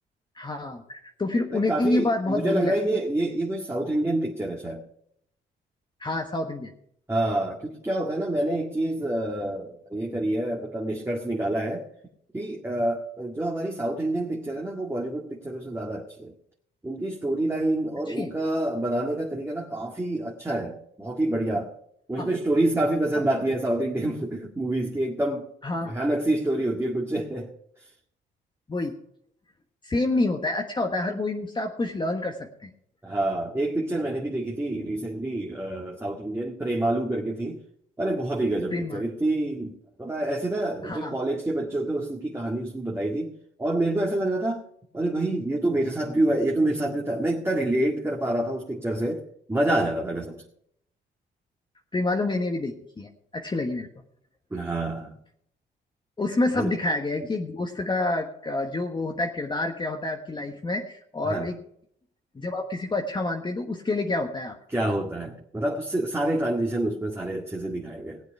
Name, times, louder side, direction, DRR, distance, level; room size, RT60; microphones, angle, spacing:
voice 1, 0.3-2.7 6.0-6.7 18.1-18.3 22.2-22.3 25.6-26.0 28.7-29.0 29.8-32.7 38.7-39.1 40.8-41.1 51.9-53.9 56.2-61.5 62.3-64.6, left 2 dB, 25° left, 3 dB, 1.3 m, -28 dB
voice 2, 1.5-4.8 7.1-11.9 12.3-16.3 16.8-21.7 22.1-25.5 25.8-27.5 33.0-37.6 38.0-43.3 43.6-44.6 44.9-49.2 49.5-50.4 54.5-55.1 56.5-56.7 61.3-61.5 64.7-68.2, right 1 dB, 10° right, -1 dB, 1.9 m, -27 dB
18.5 x 8.2 x 4.7 m, 0.71 s
cardioid pair, 90°, 20 cm